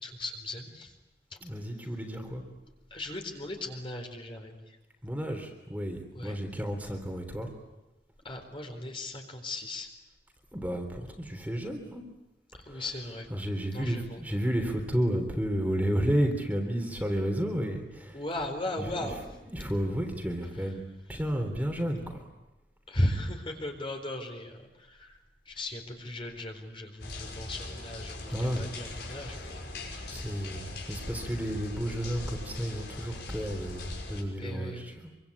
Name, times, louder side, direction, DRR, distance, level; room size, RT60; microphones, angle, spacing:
voice 1, 0.0-0.9 1.3-1.4 2.9-4.8 6.1-6.4 8.2-9.9 12.6-13.3 13.7-14.2 18.1-19.2 22.9-25.2 25.5-29.7 34.4-34.9, left 1 dB, 30° left, 4 dB, 4.1 m, -36 dB
voice 2, 1.4-2.4 5.0-7.5 10.5-12.0 12.7-12.8 13.3-18.2 18.8-20.8 21.1-22.2 28.3-28.7 29.3-29.5 30.1-35.1, equal, 10° right, 3 dB, 3.4 m, -32 dB
sound 1, 27.0-34.2, left 2 dB, 65° left, 6.2 m, -40 dB
26.5 x 25.0 x 8.6 m, 1.0 s
head